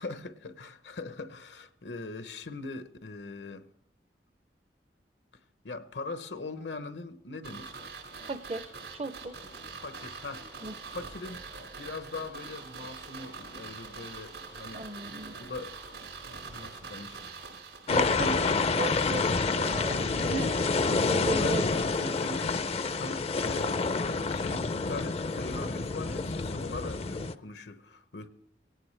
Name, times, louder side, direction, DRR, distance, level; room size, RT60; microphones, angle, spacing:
voice 1, 0.0-3.7 5.6-7.8 9.8-11.5 11.8-14.9 15.4-15.7 16.5-17.2 18.4-18.9 21.4-28.3, left 3 dB, 80° left, 0.9 m, -41 dB
sound 1, 7.4-18.4 18.7-18.8, right 4 dB, 90° right, 6.3 m, -44 dB
voice 2, 8.2-9.4 10.6-10.7 14.7-15.3 17.9-18.4 18.7-21.8, right 2 dB, 35° right, 0.5 m, -36 dB
sound 2, 17.9-27.3, left 4 dB, 35° left, 0.4 m, -28 dB
18.0 x 17.0 x 3.3 m
head